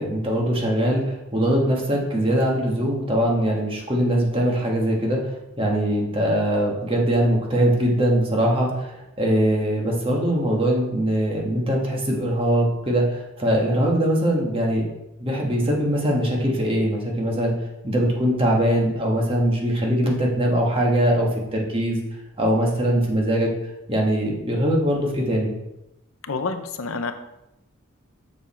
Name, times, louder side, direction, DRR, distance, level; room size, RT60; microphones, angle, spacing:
voice 1, 0.0-14.9 15.2-17.5 17.8-22.0 22.4-23.5 23.9-25.5, equal, 25° right, -1 dB, 1.6 m, -22 dB
voice 2, 26.3-27.1, left 4 dB, 70° left, 8 dB, 0.7 m, -28 dB
6.9 x 6.7 x 4.4 m, 0.91 s
head